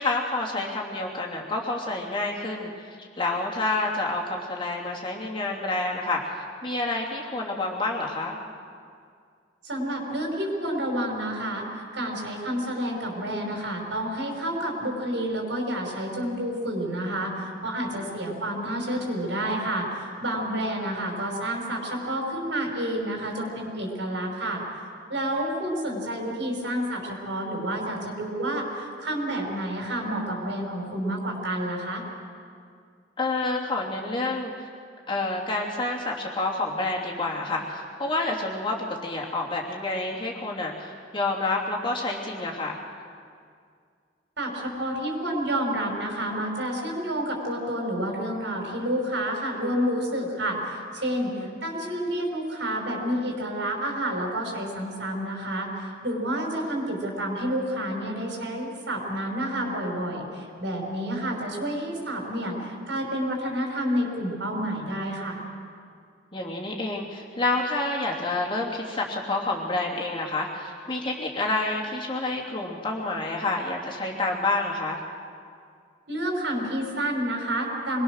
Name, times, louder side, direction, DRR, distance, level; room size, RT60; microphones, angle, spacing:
voice 1, 0.0-8.4 18.0-18.2 20.5-20.7 33.2-34.7 35.1-38.8 39.0-42.8 51.2-51.6 61.2-61.3 66.3-75.0, left 2 dB, 30° left, -2 dB, 2.9 m, -29 dB
voice 2, 9.6-24.6 25.1-32.0 44.4-65.4 76.1-78.0, right 1 dB, 80° right, 0 dB, 5.7 m, -29 dB
25.0 x 21.5 x 6.5 m, 2.2 s
head